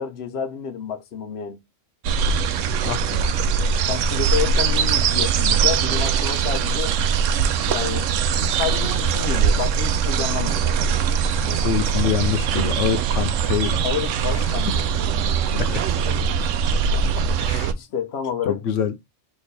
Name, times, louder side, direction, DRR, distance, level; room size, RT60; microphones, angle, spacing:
voice 1, 0.0-1.6 3.9-6.9 7.6-8.1 8.5-11.0 13.8-14.9 17.7-18.6, left 7 dB, 60° left, 1.1 m, -29 dB
sound 1, 2.0-17.7, right 6 dB, 85° right, 0.9 m, -21 dB
voice 2, 2.8-3.3 11.4-13.8 14.3-14.8 15.5-15.9 17.4-17.7 18.4-18.9, left 7 dB, 90° left, 1.0 m, -26 dB
4.2 x 3.4 x 3.3 m
omnidirectional pair, 1.2 m